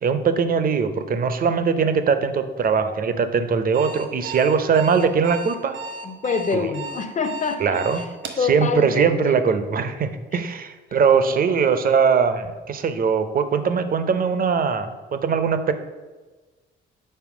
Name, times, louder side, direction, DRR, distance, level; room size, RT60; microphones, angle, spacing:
voice 1, 0.0-5.8 6.5-6.7 7.6-8.0 8.5-15.7, right 6 dB, 45° right, 10 dB, 0.7 m, -21 dB
Alarm, 3.6-8.4, right 3 dB, 70° right, 1.1 m, -34 dB
voice 2, 6.0-8.1 8.4-9.4 11.3-11.6, left 4 dB, 35° left, 9 dB, 0.7 m, -26 dB
5.6 x 4.2 x 6.0 m, 1.3 s
cardioid pair, 90°, 20 cm